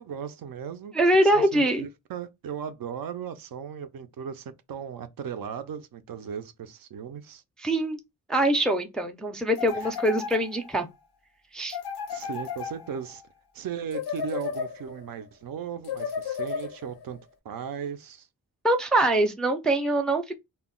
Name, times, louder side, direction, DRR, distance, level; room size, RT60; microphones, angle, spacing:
voice 1, 0.0-0.9 1.2-7.4 9.7-9.9 12.1-13.2 13.5-17.2 17.4-18.3, right 7 dB, 65° right, 0.5 m, -37 dB
voice 2, 0.9-1.9 7.6-8.0 8.3-10.9 11.5-11.8 18.6-20.3, right 1 dB, ahead, 0.3 m, -23 dB
sound 1, 9.6-10.8 11.7-13.2 13.9-15.1 15.8-17.0, left 7 dB, 85° left, 0.6 m, -34 dB
2.2 x 2.0 x 3.6 m
wide cardioid pair, 105°, 38 cm